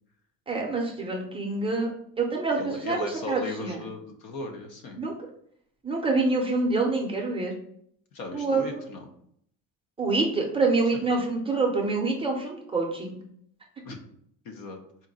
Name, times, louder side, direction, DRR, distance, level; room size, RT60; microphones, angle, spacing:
voice 1, 0.5-1.9 2.2-3.8 5.0-5.1 5.8-7.5 8.3-8.8 10.0-13.2, right 3 dB, 15° right, 0 dB, 0.5 m, -26 dB
voice 2, 2.6-5.0 8.1-9.0 10.9-11.0 13.8-14.0 14.4-14.8, left 3 dB, 75° left, 4 dB, 1.0 m, -37 dB
4.3 x 2.5 x 4.0 m, 0.66 s
cardioid pair, 175°, 35 cm